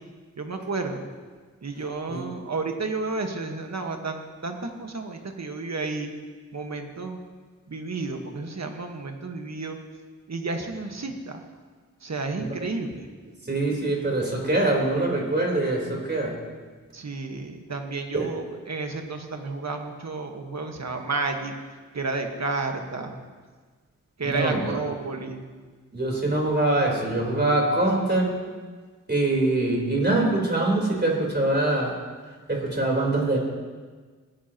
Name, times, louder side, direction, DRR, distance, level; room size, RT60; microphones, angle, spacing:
voice 1, 0.4-1.1 1.6-6.1 6.5-7.2 7.7-9.8 10.3-11.4 12.0-13.1 16.9-21.6 21.9-23.1 24.2-25.4, right 3 dB, 55° right, 4 dB, 1.5 m, -31 dB
voice 2, 13.5-16.4 18.1-18.3 24.2-24.8 25.9-28.3 29.1-31.9 32.5-33.4, right 2 dB, 30° right, -2 dB, 3.9 m, -23 dB
19.0 x 10.5 x 3.0 m, 1.5 s
cardioid pair, 50°, 32 cm